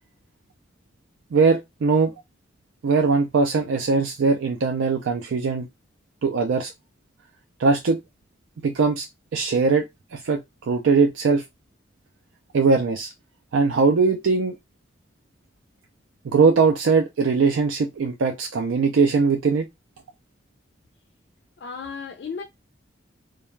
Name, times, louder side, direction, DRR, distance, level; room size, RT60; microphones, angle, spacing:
voice 1, 1.3-2.1 2.8-5.7 6.2-6.7 7.6-8.0 8.6-9.1 9.3-11.4 12.5-13.1 13.5-14.5 16.2-19.7, right 4 dB, 90° right, 0.4 m, -20 dB
voice 2, 21.6-22.4, left 5 dB, 60° left, 0.3 m, -34 dB
2.3 x 2.2 x 3.0 m
head